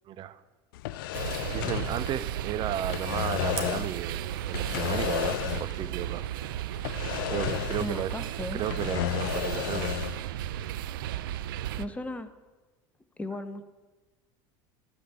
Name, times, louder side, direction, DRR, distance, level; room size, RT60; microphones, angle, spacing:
voice 1, 0.1-0.4 1.5-6.3 7.3-8.1 8.5-10.0, right 11 dB, 45° right, 14 dB, 0.5 m, -34 dB
sound 1, 0.7-2.5 2.8-4.0 4.5-5.9 6.2-6.3 6.8-8.1 8.4-10.2, left 15 dB, 85° left, 0.4 m, -33 dB
sound 2, 1.1-11.9, right 12 dB, 90° right, 0.5 m, -34 dB
Fire, 3.5-4.7, right 9 dB, 65° right, 1.9 m, -42 dB
voice 2, 7.8-8.6 11.8-12.3 13.2-13.6, left 2 dB, 10° left, 10 dB, 0.8 m, -36 dB
13.0 x 5.1 x 8.1 m, 1.2 s
supercardioid pair, 110°, 11 cm